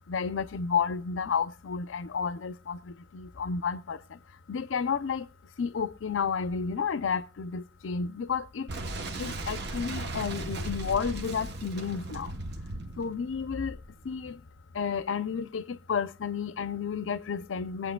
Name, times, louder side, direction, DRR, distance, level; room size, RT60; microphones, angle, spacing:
voice 1, 0.1-2.8 3.1-4.0 4.5-5.3 5.6-8.7 9.2-12.3 13.0-13.8 14.1-14.4 14.7-17.9, left 6 dB, 80° left, 0.5 m, -31 dB
Boom, 8.7-14.3, right 2 dB, 60° right, 0.9 m, -37 dB
21.0 x 8.4 x 2.2 m
head